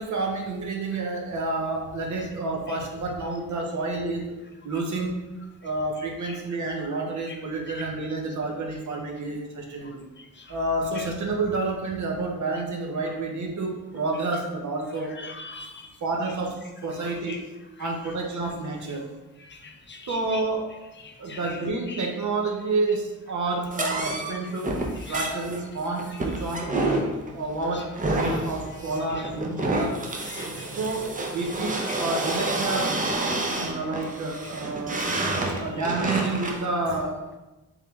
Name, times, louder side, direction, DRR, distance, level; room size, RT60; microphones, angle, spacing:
voice 1, 0.0-4.2 4.6-5.2 5.6-10.0 10.5-15.1 16.0-16.6 16.8-17.4 17.8-19.0 20.1-20.7 21.2-24.7 25.1-26.7 27.3-30.0 30.8-32.9 33.5-35.1 35.6-37.2, right 3 dB, 65° right, 1 dB, 0.9 m, -29 dB
voice 2, 15.2-15.9 17.3-17.4 17.8-17.9 19.6-20.4 21.0-21.6 21.9-22.0 24.1-24.2 25.0-25.3 26.5-26.6 27.7-27.8 28.2-28.4 30.2-30.7 31.9-32.0, left 4 dB, 35° left, 4 dB, 0.5 m, -41 dB
sound 1, 23.7-36.7, right 2 dB, 25° right, 0.6 m, -29 dB
3.6 x 3.2 x 3.4 m, 1.1 s
cardioid pair, 85°, 32 cm